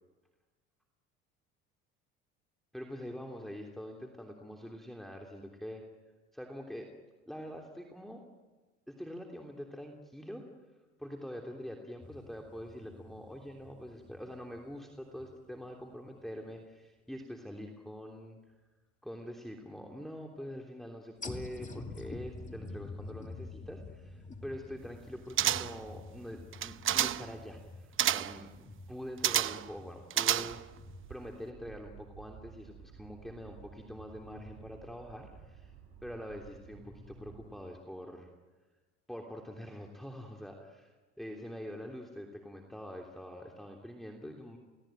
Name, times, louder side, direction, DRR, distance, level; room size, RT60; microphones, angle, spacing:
voice 1, 2.7-5.8 6.3-6.9 7.3-8.3 8.9-10.4 11.0-18.4 19.0-30.6 31.1-35.7 36.0-38.3 39.1-44.6, equal, ahead, 1 dB, 3.2 m, -45 dB
sound 1, 12.0-15.7 16.2-16.3 21.2-31.1, left 3 dB, 25° left, 2.6 m, -48 dB
sound 2, 25.4-25.9 26.5-27.3 28.0-28.4 29.2-29.7 30.1-30.8 31.1-31.2, right 11 dB, 45° right, 0.9 m, -29 dB
sound 3, 30.3-37.6, right 7 dB, 65° right, 4.3 m, -53 dB
29.5 x 18.0 x 9.1 m, 1.2 s
supercardioid pair, 80°, 29 cm